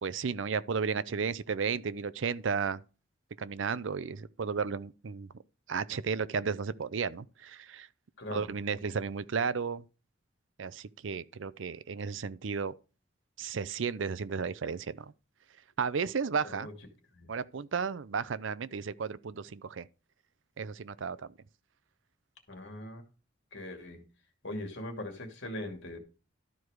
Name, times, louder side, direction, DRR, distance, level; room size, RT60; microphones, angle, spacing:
voice 1, 0.0-2.8 3.4-5.3 5.7-7.9 8.3-9.8 10.6-12.7 13.4-15.1 15.8-16.7 17.3-19.9 20.6-21.3, right 5 dB, 85° right, 0.5 m, -33 dB
voice 2, 8.2-8.5 16.5-16.7 17.2-17.3 22.5-23.0 23.5-24.0 24.4-26.0, left 1 dB, 65° left, 2.4 m, -40 dB
12.5 x 4.7 x 4.9 m
head